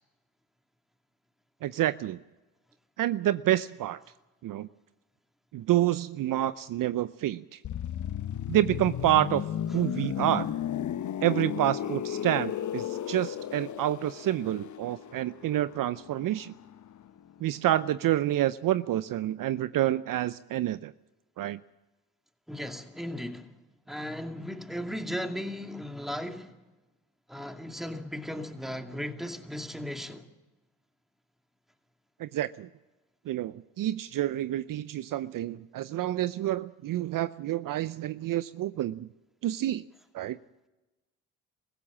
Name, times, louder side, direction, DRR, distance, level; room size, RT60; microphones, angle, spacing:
voice 1, 1.6-2.2 3.0-4.0 4.4-4.7 5.5-7.6 8.5-9.4 9.7-10.5 11.2-16.5 17.4-20.9 21.4-21.6 32.2-32.7 33.3-39.1 39.4-39.8 40.1-40.4, right 13 dB, 55° right, 0.6 m, -28 dB
sound 1, 7.6-17.3 17.6-17.8, left 10 dB, 50° left, 0.9 m, -35 dB
voice 2, 22.5-23.5 23.9-26.5 27.3-30.3, equal, ahead, 2.4 m, -36 dB
24.5 x 15.5 x 7.3 m
hypercardioid pair, 55°, 38 cm